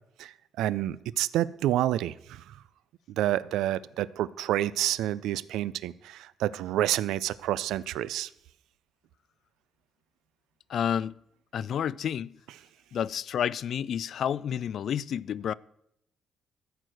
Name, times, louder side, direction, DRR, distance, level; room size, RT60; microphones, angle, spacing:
voice 1, 0.2-2.4 3.2-8.3, right 13 dB, 90° right, 0.4 m, -29 dB
voice 2, 10.7-11.2 11.5-12.4 12.9-15.5, left 9 dB, 65° left, 0.3 m, -30 dB
14.0 x 4.7 x 7.8 m
cardioid pair, 90°, 0 cm